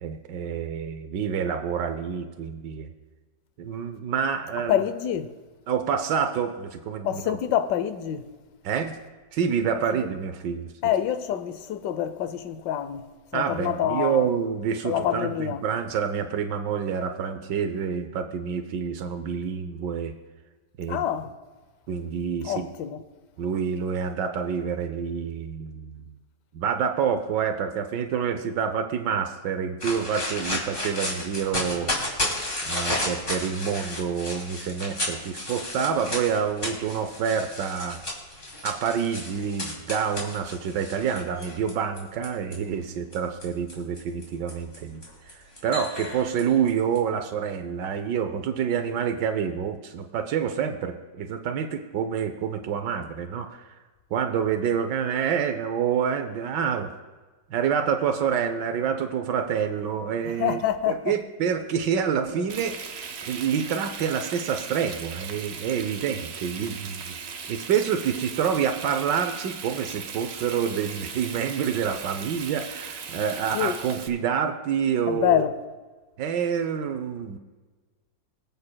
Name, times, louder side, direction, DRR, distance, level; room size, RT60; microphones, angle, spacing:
voice 1, 0.0-2.9 3.6-4.8 5.7-7.4 8.6-9.0 9.3-10.7 13.3-20.1 20.8-21.0 21.9-22.7 23.4-25.9 26.5-31.9 32.6-38.0 38.6-53.7 54.1-56.9 57.5-60.6 60.9-63.0 63.3-67.2 67.5-75.4 76.2-77.4, right 7 dB, 80° right, 1.3 m, -27 dB
voice 2, 4.7-5.3 7.0-8.3 9.9-10.1 10.8-14.3 14.8-15.6 20.9-21.3 22.4-23.0 60.3-61.1 62.4-62.5 73.5-73.8 75.1-75.5, left 10 dB, 75° left, 1.3 m, -26 dB
sound 1, 29.8-42.6 43.1-47.0, left 1 dB, 30° left, 2.4 m, -33 dB
Frying (food), 62.5-74.1, right 6 dB, 55° right, 0.7 m, -38 dB
24.0 x 8.1 x 2.2 m
omnidirectional pair, 1.9 m